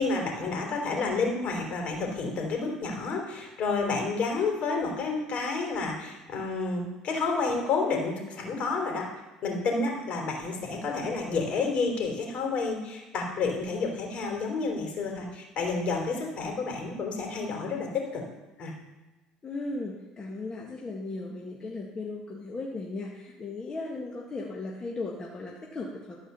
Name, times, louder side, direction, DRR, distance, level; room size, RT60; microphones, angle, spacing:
voice 1, 0.0-9.0 9.4-18.2 18.6-18.7, left 4 dB, 50° left, 1 dB, 3.6 m, -30 dB
voice 2, 19.4-26.3, left 2 dB, 30° left, -2 dB, 1.8 m, -36 dB
13.5 x 5.0 x 6.9 m, 1.1 s
supercardioid pair, 90°, 3 cm